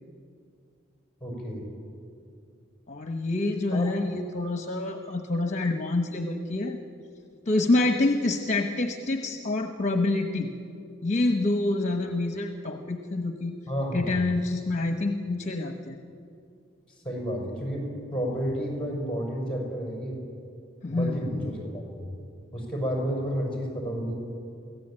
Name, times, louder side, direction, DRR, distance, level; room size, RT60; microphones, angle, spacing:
voice 1, 1.2-1.6 3.7-3.9 13.7-14.2 17.0-17.9 18.1-20.2 20.9-22.1 22.5-24.1, equal, 5° left, -1 dB, 6.0 m, -31 dB
voice 2, 2.9-6.8 7.5-10.5 11.0-13.6 13.9-16.0 20.8-21.6, left 2 dB, 40° left, 5 dB, 1.1 m, -27 dB
24.0 x 16.5 x 8.9 m, 2.4 s
head